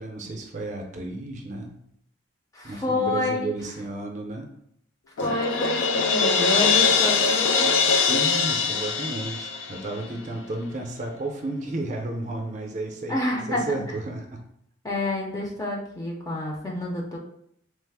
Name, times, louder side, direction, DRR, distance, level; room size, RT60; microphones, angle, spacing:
voice 1, 0.0-1.8 2.6-4.5 5.2-5.4 8.1-14.4, right 2 dB, 40° right, 2 dB, 0.5 m, -33 dB
voice 2, 2.5-3.5 5.2-7.7 13.1-13.7 14.8-17.2, left 2 dB, 20° left, -1 dB, 0.4 m, -28 dB
Crash cymbal, 5.2-10.1, left 5 dB, 85° left, 0.3 m, -22 dB
3.2 x 2.0 x 3.4 m, 0.73 s
head